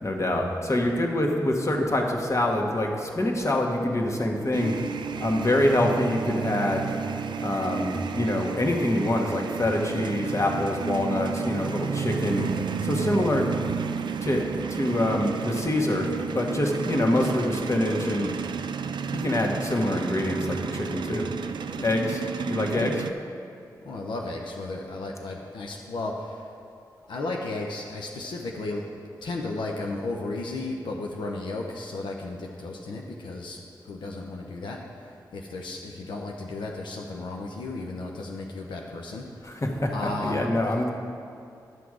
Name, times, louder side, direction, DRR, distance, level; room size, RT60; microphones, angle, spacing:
voice 1, 0.0-4.8 5.2-6.9 7.4-12.5 12.8-13.5 14.2-14.4 14.7-16.1 16.3-18.3 19.1-21.2 21.8-23.0 39.4-40.9, left 1 dB, 40° left, 1 dB, 1.4 m, -25 dB
sound 1, 4.5-23.1, right 6 dB, 75° right, 0.4 m, -32 dB
voice 2, 23.8-26.5 27.1-33.6 33.8-39.2 39.5-39.6 39.9-40.4, left 2 dB, 85° left, 0 dB, 0.7 m, -34 dB
11.0 x 6.0 x 4.9 m, 2.6 s
cardioid pair, 45°, 8 cm